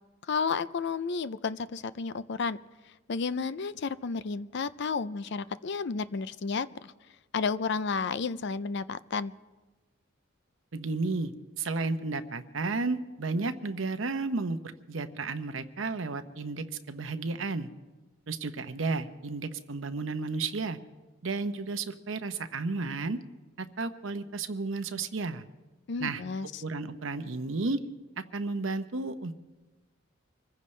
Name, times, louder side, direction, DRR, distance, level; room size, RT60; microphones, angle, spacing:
voice 1, 0.3-2.6 3.1-6.9 7.3-9.3 25.9-26.6, left 5 dB, 60° left, 15 dB, 0.5 m, -32 dB
voice 2, 10.7-14.6 14.9-17.7 18.3-20.8 21.2-23.2 23.6-25.4 26.0-26.2 26.6-27.8 28.3-29.3, right 3 dB, 75° right, 9 dB, 0.8 m, -32 dB
25.5 x 15.0 x 3.3 m, 1.2 s
head